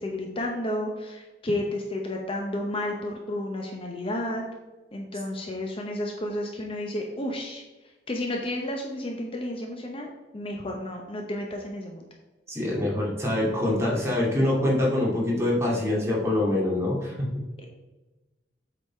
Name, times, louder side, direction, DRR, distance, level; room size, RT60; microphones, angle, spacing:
voice 1, 0.0-4.5 4.9-7.6 8.1-12.1 17.6-17.7, left 1 dB, 30° left, 1 dB, 0.8 m, -32 dB
voice 2, 12.5-17.4, left 1 dB, 15° right, -4 dB, 2.2 m, -25 dB
8.0 x 4.0 x 4.3 m, 1.2 s
head